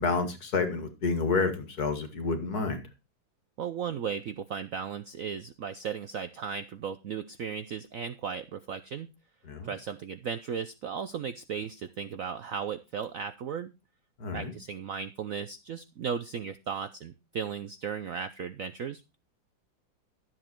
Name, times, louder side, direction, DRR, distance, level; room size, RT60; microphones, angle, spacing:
voice 1, 0.0-2.8 9.5-9.7 14.2-14.6, left 4 dB, 55° left, 7 dB, 2.3 m, -29 dB
voice 2, 3.6-9.1 9.6-13.7 14.3-19.2, right 7 dB, 65° right, 12 dB, 0.8 m, -36 dB
12.5 x 7.6 x 4.4 m, 0.27 s
omnidirectional pair, 2.1 m